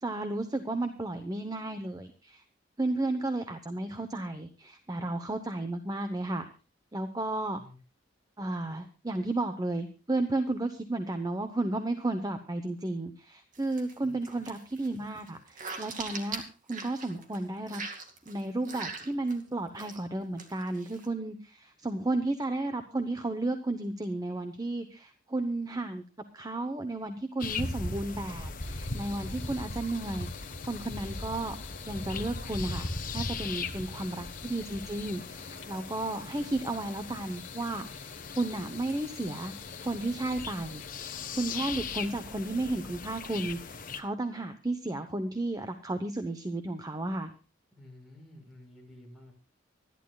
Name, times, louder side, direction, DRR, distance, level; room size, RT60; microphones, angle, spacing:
voice 1, 0.0-2.4 2.8-6.5 6.9-7.6 8.4-16.4 16.7-17.8 18.3-26.0 26.3-31.5 31.9-32.9 33.1-39.5 39.8-47.3, right 2 dB, 20° right, 8 dB, 0.9 m, -33 dB
sound 1, 13.5-13.9 14.2-17.4 17.7-19.4 19.7-20.0 20.4-21.1, right 4 dB, 40° right, 2.4 m, -41 dB
voice 2, 13.9-14.4 47.7-49.3, left 2 dB, ahead, 1 dB, 6.2 m, -52 dB
sound 2, 27.4-44.0, left 3 dB, 45° left, 1.3 m, -39 dB
sound 3, 28.6-41.3, left 11 dB, 85° left, 2.2 m, -51 dB
25.5 x 11.0 x 2.4 m, 0.35 s
head